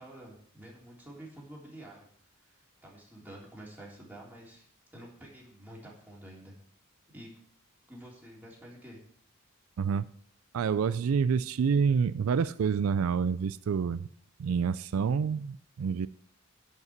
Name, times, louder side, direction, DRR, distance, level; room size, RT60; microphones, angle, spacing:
voice 1, 0.0-2.0 2.4-4.6 4.9-6.5 7.1-7.3 7.9-9.0, right 1 dB, 10° right, -4 dB, 3.5 m, -49 dB
voice 2, 9.8-10.1 10.5-14.1 14.4-16.1, right 6 dB, 85° right, 16 dB, 0.4 m, -28 dB
10.5 x 5.5 x 8.0 m, 0.63 s
head